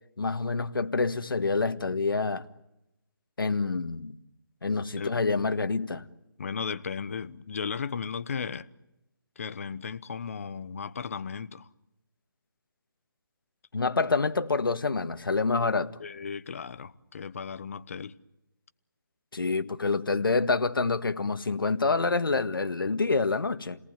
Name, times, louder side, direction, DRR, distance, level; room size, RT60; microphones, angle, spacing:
voice 1, 0.2-2.5 3.4-4.1 4.6-6.1 13.7-16.0 19.3-23.8, left 4 dB, 90° left, 1.7 m, -27 dB
voice 2, 6.4-8.7 9.4-11.7 16.0-18.1, left 6 dB, 40° left, 1.0 m, -35 dB
30.0 x 18.5 x 9.0 m
hypercardioid pair, 170°, 11 cm